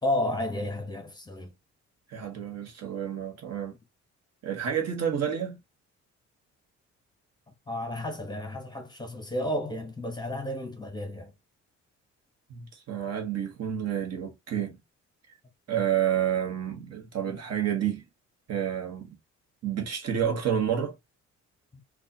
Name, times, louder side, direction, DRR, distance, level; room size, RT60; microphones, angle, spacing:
voice 1, 0.0-1.5 7.7-11.3 21.7-21.8, left 1 dB, 15° left, 0.9 m, -32 dB
voice 2, 2.1-3.7 4.4-5.6 12.5-14.8 15.7-18.0 18.5-19.2 19.6-20.9, right 9 dB, 55° right, 1.1 m, -29 dB
3.5 x 2.3 x 2.7 m
cardioid pair, 90°, 30 cm